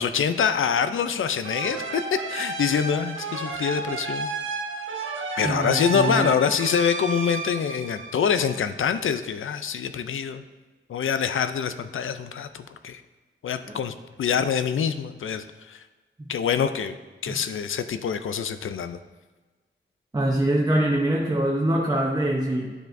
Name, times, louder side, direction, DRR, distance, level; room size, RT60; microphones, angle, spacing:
voice 1, 0.0-4.3 5.4-10.4 10.9-13.0 13.4-15.8 16.3-17.0 17.2-19.0, left 7 dB, 80° left, 10 dB, 0.5 m, -25 dB
sound 1, 1.4-8.9, right 4 dB, 75° right, 0.9 m, -32 dB
voice 2, 5.4-6.3 13.7-13.8 17.3-17.4 20.1-22.7, right 1 dB, 20° right, -3 dB, 0.8 m, -24 dB
12.0 x 4.9 x 2.6 m, 1.3 s
wide cardioid pair, 145°, 20 cm